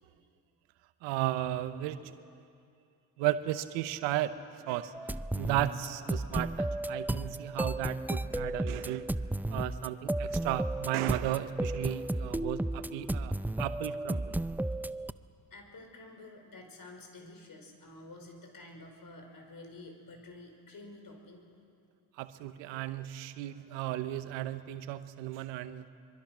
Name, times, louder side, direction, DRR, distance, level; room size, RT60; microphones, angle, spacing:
voice 1, 1.0-2.1 3.2-4.4 4.7-9.1 9.5-14.4 22.2-25.8, right 14 dB, 85° right, 12 dB, 1.0 m, -34 dB
sound 1, 4.9-15.1, right 1 dB, 5° right, 0.5 m, -33 dB
voice 2, 15.5-21.5, left 2 dB, 50° left, 4 dB, 5.4 m, -50 dB
24.5 x 24.0 x 6.2 m, 2.4 s
hypercardioid pair, 50°, 43 cm